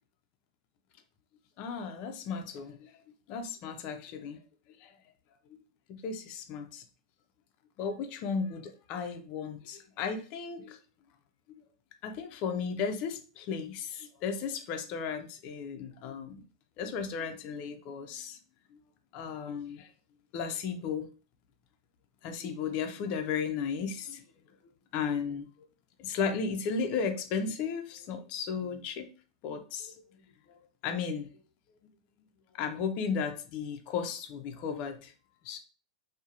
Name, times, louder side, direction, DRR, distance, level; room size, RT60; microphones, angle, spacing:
voice 1, 1.6-2.9 3.3-4.4 4.8-4.9 5.9-6.8 7.8-10.8 11.5-11.6 12.0-16.4 16.8-18.4 19.1-19.9 20.3-21.1 22.2-24.2 24.9-25.5 26.0-29.1 29.4-29.9 30.8-31.3 32.5-35.1 35.4-35.6, left 6 dB, 45° left, 6 dB, 0.4 m, -35 dB
2.7 x 2.0 x 2.3 m, 0.36 s
supercardioid pair, 135°, 3 cm